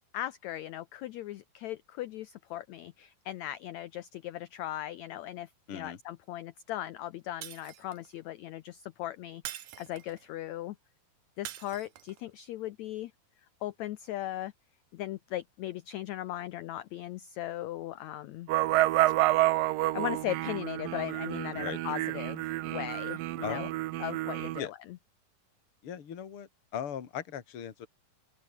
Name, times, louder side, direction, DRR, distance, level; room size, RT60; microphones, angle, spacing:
voice 1, 0.1-10.8 11.4-13.1 13.6-14.5 14.9-18.5 19.1-19.2 19.9-23.7 24.0-25.0, left 13 dB, 85° left, 1.5 m, -38 dB
voice 2, 5.7-6.0 21.5-21.8 23.4-23.8 24.6-24.7 25.8-27.9, left 9 dB, 40° left, 3.0 m, -38 dB
Shatter, 7.4-8.1 9.4-10.3 11.5-12.2, right 12 dB, 65° right, 2.5 m, -44 dB
sound 1, 18.5-24.6, right 17 dB, 80° right, 2.4 m, -29 dB
open air
omnidirectional pair, 4.1 m